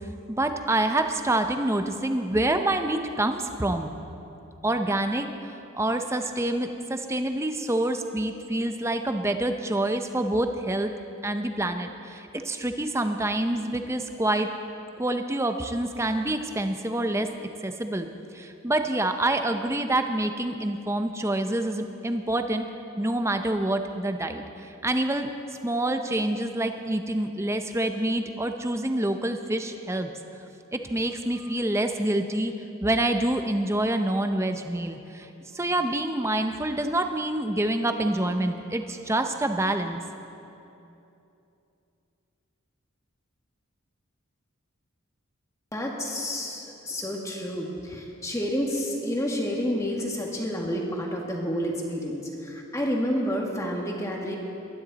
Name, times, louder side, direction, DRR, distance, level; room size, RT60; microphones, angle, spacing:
voice 1, 0.3-3.9 4.6-5.3 5.7-10.9 11.2-14.5 15.0-17.3 17.6-18.1 18.3-22.6 23.0-25.3 25.6-30.1 30.7-32.5 32.8-35.3 35.5-40.0, right 1 dB, 15° right, 7 dB, 0.6 m, -27 dB
voice 2, 45.7-54.4, equal, 15° left, -1 dB, 1.6 m, -29 dB
19.5 x 13.0 x 4.0 m, 2.8 s
head